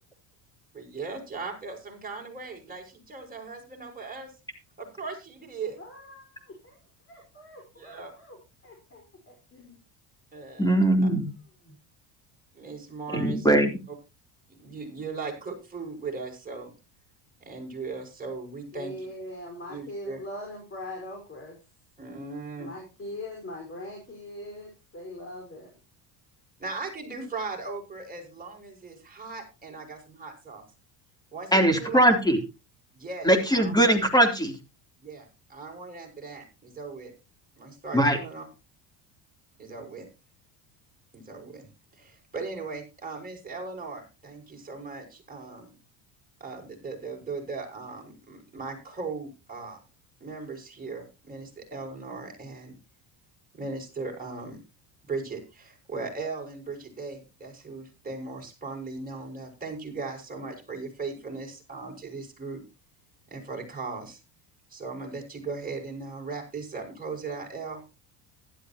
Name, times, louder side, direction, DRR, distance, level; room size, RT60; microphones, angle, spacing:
voice 1, 0.7-4.3 4.8-5.8 7.7-8.1 10.3-10.7 12.5-13.5 14.5-16.7 17.4-19.1 19.7-20.2 22.0-22.7 26.6-30.6 31.3-32.2 32.9-33.7 35.0-37.1 37.6-38.4 39.6-40.1 41.1-45.7 46.4-49.8 50.2-52.7 53.5-54.6 55.0-62.6 63.3-64.2 64.7-67.9, right 4 dB, 20° right, 0 dB, 6.1 m, -38 dB
voice 2, 5.8-6.7 7.1-8.4 8.6-9.8 11.6-11.8 18.7-21.6 22.6-25.7, left 1 dB, 25° left, 1 dB, 5.0 m, -41 dB
voice 3, 10.6-11.3 13.1-13.7 31.5-32.4 33.2-34.5 37.9-38.2, right 1 dB, 10° left, 5 dB, 3.4 m, -21 dB
15.0 x 12.5 x 3.0 m, 0.28 s
supercardioid pair, 90°, 46 cm